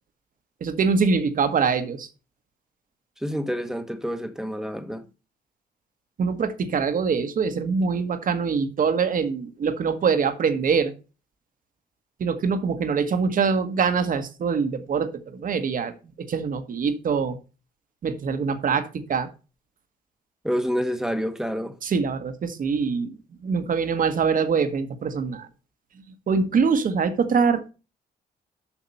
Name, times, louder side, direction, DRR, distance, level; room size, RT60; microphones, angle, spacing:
voice 1, 0.6-2.1 6.2-10.9 12.2-15.9 16.2-17.4 18.0-19.3 21.8-23.2 23.4-25.5 26.3-27.7, right 5 dB, 55° right, 1.3 m, -24 dB
voice 2, 3.2-5.0 20.4-21.8, equal, 5° right, 1.2 m, -28 dB
7.2 x 5.9 x 5.5 m
cardioid pair, 95°, 17 cm